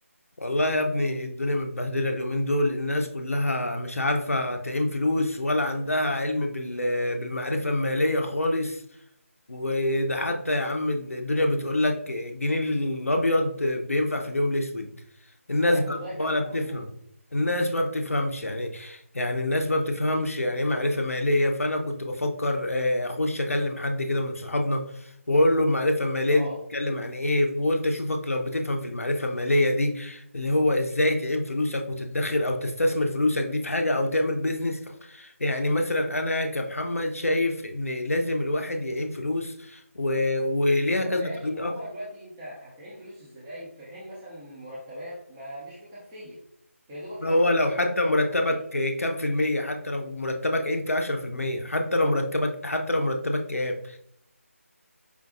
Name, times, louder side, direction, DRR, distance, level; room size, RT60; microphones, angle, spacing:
voice 1, 0.4-8.8 9.5-14.9 15.5-16.9 17.3-41.7 47.2-54.0, left 1 dB, 70° left, 4 dB, 0.6 m, -26 dB
voice 2, 15.6-16.8 26.3-26.6 41.0-46.4 46.9-48.5, equal, 15° right, -9 dB, 0.7 m, -40 dB
5.0 x 2.5 x 2.5 m, 0.71 s
figure-of-eight pair, 160°, 8 cm